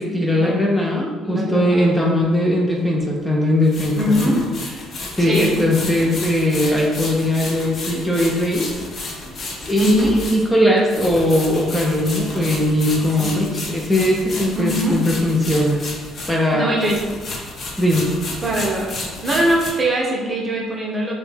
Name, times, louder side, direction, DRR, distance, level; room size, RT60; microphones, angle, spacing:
voice 1, 0.0-4.3 5.2-8.7 9.7-15.8 16.3-16.8 17.8-18.1, left 1 dB, 5° left, -1 dB, 0.5 m, -19 dB
voice 2, 1.2-2.0 3.9-4.4 5.3-5.6 9.8-10.2 12.3-12.5 13.2-13.4 14.6-15.0 16.5-17.0 18.4-18.9 19.2-21.1, equal, 35° right, -2 dB, 0.7 m, -22 dB
sound 1, 2.2-2.3 3.6-16.5 16.8-19.7, left 2 dB, 50° left, 0.7 m, -32 dB
2.7 x 2.2 x 3.2 m, 1.4 s
hypercardioid pair, 60°, 0 cm